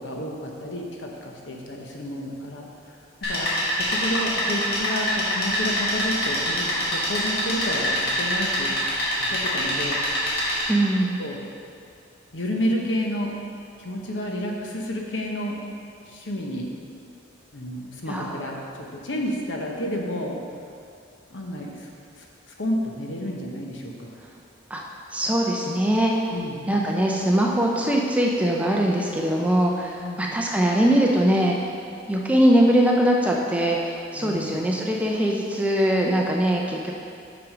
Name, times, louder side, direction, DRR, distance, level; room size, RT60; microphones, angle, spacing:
voice 1, 0.0-2.7 3.2-8.7 9.2-10.0 11.2-11.4 12.3-13.4 13.8-15.6 16.1-16.7 17.5-20.4 21.3-21.9 22.2-22.3 22.6-24.1 26.3-26.6 30.0-30.3 34.2-34.6, equal, 70° left, 0 dB, 0.9 m, -30 dB
sound 1, 3.2-10.6, equal, 50° left, 1.6 m, -25 dB
voice 2, 10.7-11.1 18.1-18.4 24.7-24.8 25.1-26.3 26.7-31.6 32.1-36.9, right 1 dB, 5° right, -1 dB, 0.5 m, -21 dB
6.1 x 6.0 x 4.9 m, 2.5 s
head